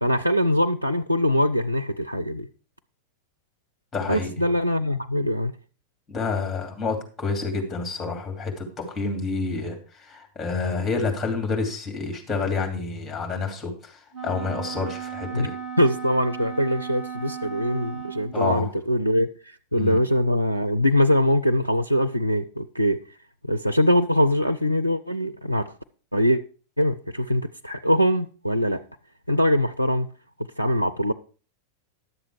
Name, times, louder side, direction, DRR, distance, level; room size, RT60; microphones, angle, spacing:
voice 1, 0.0-2.5 4.1-5.5 15.3-15.5 15.8-23.0 23.5-25.7 26.1-26.4 26.8-28.8 29.3-30.1 30.6-31.1, equal, 90° left, 0.4 m, -22 dB
voice 2, 3.9-4.3 6.1-8.7 8.9-15.6 18.3-18.7 19.7-20.0, left 4 dB, 15° left, 2.8 m, -28 dB
Wind instrument woodwind instrument, 14.1-18.4, right 7 dB, 20° right, 2.6 m, -35 dB
11.0 x 7.3 x 4.8 m
figure-of-eight pair, 90°, 0 cm